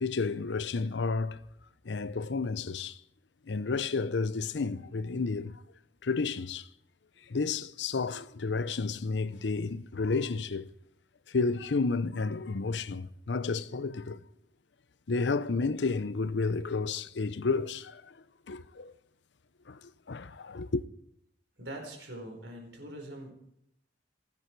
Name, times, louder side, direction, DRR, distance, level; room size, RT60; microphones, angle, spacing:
voice 1, 0.0-1.4 1.8-3.0 3.5-5.6 6.0-6.7 7.3-10.7 11.3-14.2 15.1-18.1 18.5-18.9 19.7-20.8, left 4 dB, 90° left, 0.7 m, -31 dB
voice 2, 21.6-23.3, right 1 dB, 90° right, 4.7 m, -43 dB
29.0 x 9.6 x 4.6 m
head